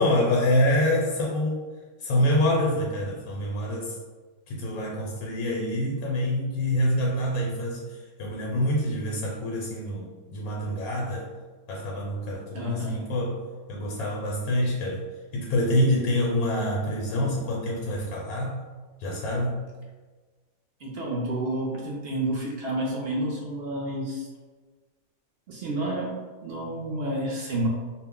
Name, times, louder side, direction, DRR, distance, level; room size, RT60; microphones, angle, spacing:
voice 1, 0.0-1.6 2.0-3.9 4.5-11.3 11.7-13.4 13.7-15.0 15.3-18.6 19.0-19.6, left 1 dB, 85° left, -2 dB, 1.1 m, -26 dB
voice 2, 12.5-13.1 20.8-24.3 25.5-26.2 26.4-27.7, right 1 dB, 65° right, -2 dB, 0.6 m, -29 dB
2.4 x 2.0 x 3.5 m, 1.3 s
omnidirectional pair, 1.5 m